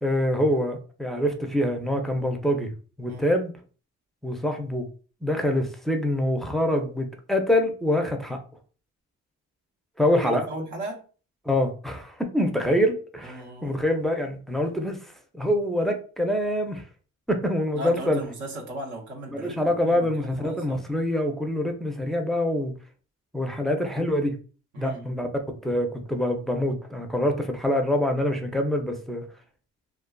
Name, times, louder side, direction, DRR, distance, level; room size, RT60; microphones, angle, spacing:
voice 1, 0.0-2.7 3.0-3.5 4.2-4.9 5.2-8.4 10.0-10.5 11.4-16.8 17.3-18.2 19.3-22.7 23.3-24.4 24.8-29.3, left 1 dB, ahead, 3 dB, 0.4 m, -25 dB
voice 2, 10.5-11.0 13.2-13.7 17.7-20.8 24.7-25.1, right 1 dB, 75° right, -1 dB, 0.8 m, -37 dB
2.4 x 2.4 x 2.2 m, 0.38 s
cardioid pair, 90°, 30 cm